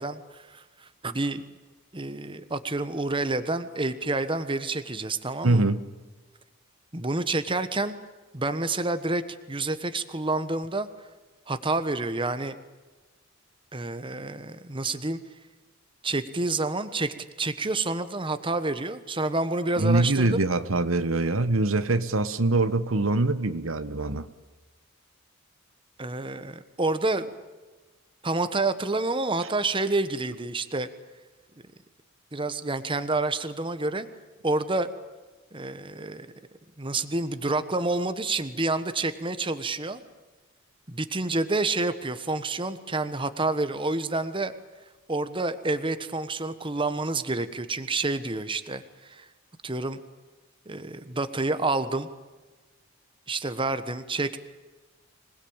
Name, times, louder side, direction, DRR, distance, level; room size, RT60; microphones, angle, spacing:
voice 1, 0.0-1.4 1.9-5.7 6.9-8.0 8.3-9.2 9.5-10.9 11.5-12.5 13.7-15.2 16.0-20.4 26.0-27.3 28.2-30.9 32.3-34.1 34.4-34.9 35.5-36.3 36.8-40.0 40.9-44.5 45.1-48.8 49.1-49.3 49.6-50.0 50.7-52.1 53.3-54.4, right 2 dB, 25° right, 1.3 m, -28 dB
voice 2, 5.4-5.8 19.8-24.3, right 2 dB, 85° right, 1.4 m, -24 dB
26.0 x 20.0 x 8.9 m
head